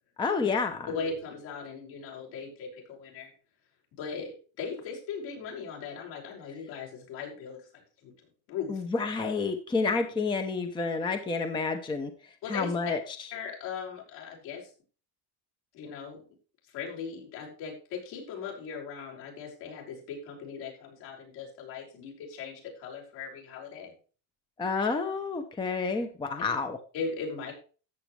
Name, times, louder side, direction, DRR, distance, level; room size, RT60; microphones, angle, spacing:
voice 1, 0.2-0.9 8.7-12.1 12.5-13.0 24.6-26.8, left 4 dB, 10° left, 7 dB, 0.7 m, -29 dB
voice 2, 0.9-3.3 4.0-8.1 8.5-8.8 12.4-12.7 13.3-14.7 15.7-16.2 16.7-23.9 26.9-27.5, left 5 dB, 65° left, -2 dB, 5.8 m, -38 dB
13.5 x 8.2 x 3.2 m, 0.37 s
cardioid pair, 170°, 47 cm